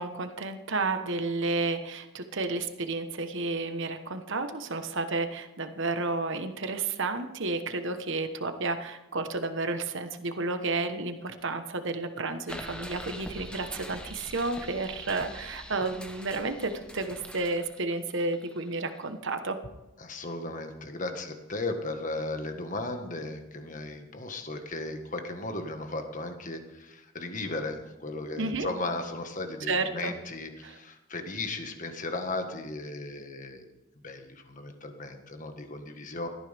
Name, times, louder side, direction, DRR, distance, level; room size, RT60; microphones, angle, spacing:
voice 1, 0.0-19.6 28.4-28.7 29.7-30.1 30.6-30.8, right 3 dB, 55° right, 8 dB, 1.2 m, -31 dB
sound 1, 12.5-19.0, equal, 5° left, 1.0 m, -43 dB
voice 2, 20.0-33.7 34.0-36.3, left 2 dB, 35° left, 5 dB, 1.6 m, -36 dB
17.5 x 13.5 x 3.5 m, 1.0 s
head